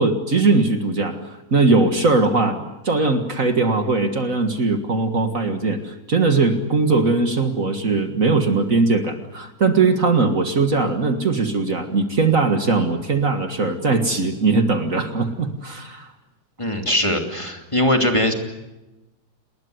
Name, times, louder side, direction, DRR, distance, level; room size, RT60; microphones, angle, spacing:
voice 1, 0.0-16.1, right 3 dB, 50° right, 7 dB, 2.1 m, -20 dB
voice 2, 16.6-18.3, left 1 dB, 15° left, 3 dB, 2.8 m, -20 dB
30.0 x 20.5 x 7.9 m, 1.0 s
omnidirectional pair, 1.9 m